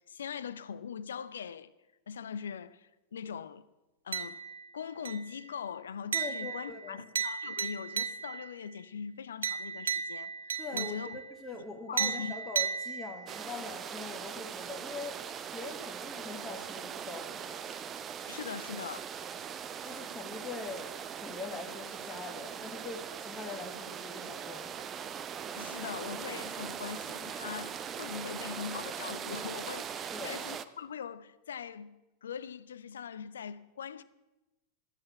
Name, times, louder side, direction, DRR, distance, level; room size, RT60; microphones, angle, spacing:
voice 1, 0.1-1.7 2.1-3.6 4.0-4.4 4.7-11.2 11.9-12.3 18.3-19.1 25.6-31.9 32.2-34.0, left 7 dB, 65° left, 0.5 m, -41 dB
sound 1, 4.1-4.7 5.0-5.5 6.1-8.5 9.4-11.3 12.0-13.4, right 6 dB, 70° right, 0.6 m, -35 dB
voice 2, 6.1-7.1 10.6-15.2 15.5-17.6 19.8-20.9 21.2-24.9 30.1-30.4, left 3 dB, 10° left, 1.4 m, -43 dB
sound 2, 13.3-30.6, right 8 dB, 25° right, 0.6 m, -41 dB
12.5 x 8.6 x 6.9 m
figure-of-eight pair, 90°, 0 cm